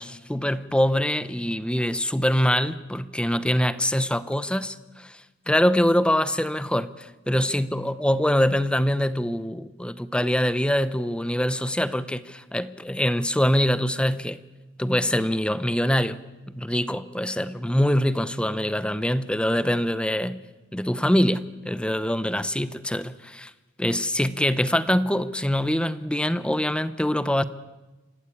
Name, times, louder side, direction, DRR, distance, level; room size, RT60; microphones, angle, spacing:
voice 1, 0.0-5.2 5.5-14.4 14.8-20.4 20.7-23.5 23.8-27.4, equal, 5° left, 0.8 m, -24 dB
26.5 x 17.0 x 8.5 m
head